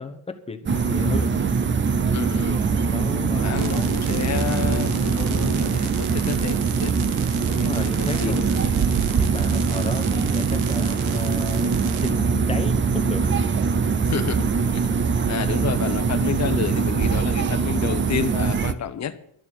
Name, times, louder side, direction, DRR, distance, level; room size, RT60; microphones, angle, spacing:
voice 1, 0.0-1.3 2.9-3.9 7.4-8.5 9.2-13.4, left 4 dB, 10° left, 1.1 m, -34 dB
sound 1, 0.7-18.7, right 5 dB, 25° right, 0.5 m, -22 dB
voice 2, 1.0-1.3 2.1-2.6 3.3-7.0 7.6-8.7 14.0-19.2, left 8 dB, 35° left, 1.0 m, -30 dB
sound 2, 3.6-12.1, right 8 dB, 75° right, 1.5 m, -38 dB
12.0 x 7.0 x 9.5 m
cardioid pair, 170°, 50 cm